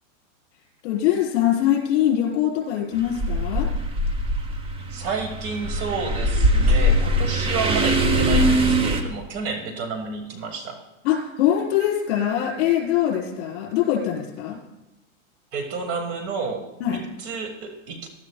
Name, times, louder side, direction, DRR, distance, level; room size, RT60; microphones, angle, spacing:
voice 1, 0.8-3.7 11.0-14.6 16.8-17.0, left 11 dB, 55° left, -3 dB, 4.0 m, -23 dB
sound 1, 3.0-9.0, equal, 15° right, 0.8 m, -21 dB
voice 2, 4.9-10.8 15.5-18.1, right 4 dB, 35° right, 5 dB, 1.6 m, -30 dB
18.5 x 12.0 x 2.3 m, 0.97 s
hypercardioid pair, 140°, 39 cm